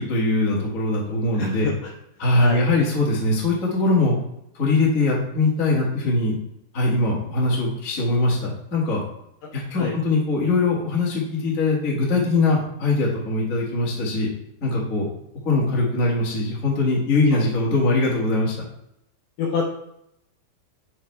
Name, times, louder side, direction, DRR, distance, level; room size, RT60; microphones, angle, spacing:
voice 1, 0.0-1.7 2.2-4.1 4.6-6.3 6.7-9.0 9.5-14.3 14.6-15.1 15.4-18.5, left 2 dB, 60° left, -4 dB, 0.8 m, -21 dB
voice 2, 1.3-1.9 2.4-2.7 9.8-10.0 17.3-17.4 19.4-19.6, left 5 dB, 80° left, -1 dB, 2.0 m, -27 dB
9.2 x 4.6 x 3.3 m, 0.78 s
omnidirectional pair, 4.9 m